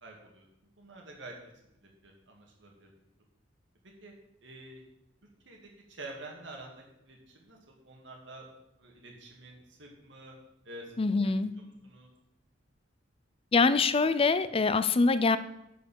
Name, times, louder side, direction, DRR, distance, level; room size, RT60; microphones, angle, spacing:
voice 1, 0.0-0.4 0.8-1.3 1.8-2.9 4.0-4.1 4.4-4.8 5.5-8.5 8.8-10.3 10.6-11.0 11.2-12.1, right 2 dB, 70° right, 0 dB, 2.3 m, -48 dB
voice 2, 11.0-11.5 13.5-15.4, left 4 dB, 30° left, 14 dB, 0.5 m, -24 dB
11.5 x 4.8 x 7.1 m, 0.84 s
head